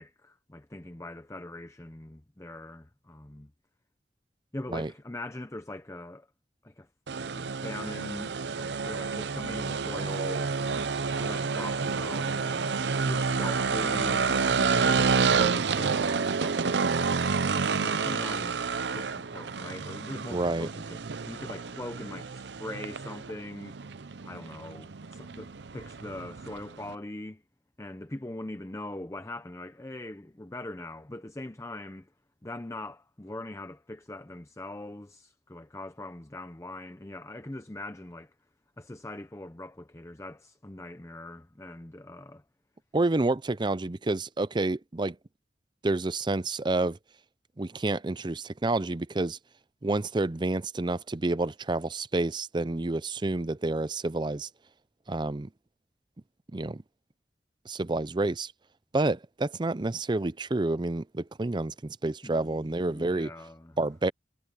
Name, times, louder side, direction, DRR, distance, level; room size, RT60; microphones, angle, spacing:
voice 1, 0.0-3.5 4.5-6.3 6.6-6.9 7.4-12.7 13.0-17.0 17.5-23.8 24.2-27.4 27.8-32.1 32.4-38.3 38.8-42.4 62.2-63.8, left 1 dB, 15° left, 0.7 m, -41 dB
sound 1, 7.1-26.9, right 5 dB, 80° right, 0.7 m, -29 dB
voice 2, 20.3-20.7 42.9-45.2 45.8-47.0 47.6-49.4 49.8-54.5 55.1-55.5 56.5-56.8 57.7-58.5 58.9-63.3 63.8-64.1, right 2 dB, 25° right, 0.5 m, -29 dB
head